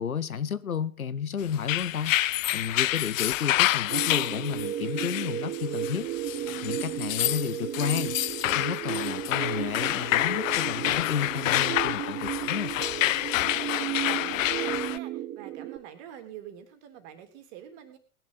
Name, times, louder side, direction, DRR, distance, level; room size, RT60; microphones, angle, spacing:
voice 1, 0.0-2.2 2.5-6.1 6.6-8.2 8.5-12.7, left 7 dB, 85° left, 0.9 m, -32 dB
sound 1, 1.5-15.0, left 15 dB, 65° left, 0.6 m, -28 dB
sound 2, 3.9-15.8, right 12 dB, 35° right, 1.6 m, -34 dB
voice 2, 13.3-18.0, right 10 dB, 50° right, 3.3 m, -46 dB
19.5 x 11.0 x 4.0 m
figure-of-eight pair, 85°, 42 cm